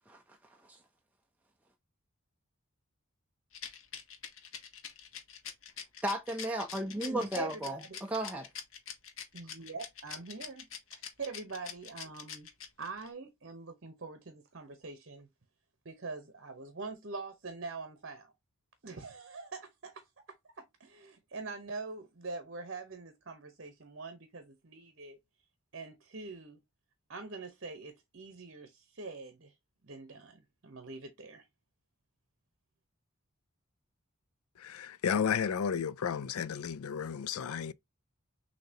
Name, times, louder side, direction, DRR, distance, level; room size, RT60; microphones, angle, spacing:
Rattle, 3.5-13.1, left 8 dB, 65° left, 1.1 m, -44 dB
voice 1, 6.0-8.5, right 1 dB, 5° right, 0.5 m, -35 dB
voice 2, 7.4-8.0 9.3-12.5 12.8-15.3 15.8-18.3 18.8-20.1 20.6-25.2 25.7-26.6 27.1-29.5 29.8-31.5, right 3 dB, 55° right, 0.9 m, -44 dB
voice 3, 34.6-37.7, left 7 dB, 80° left, 0.4 m, -33 dB
6.5 x 2.9 x 2.8 m
head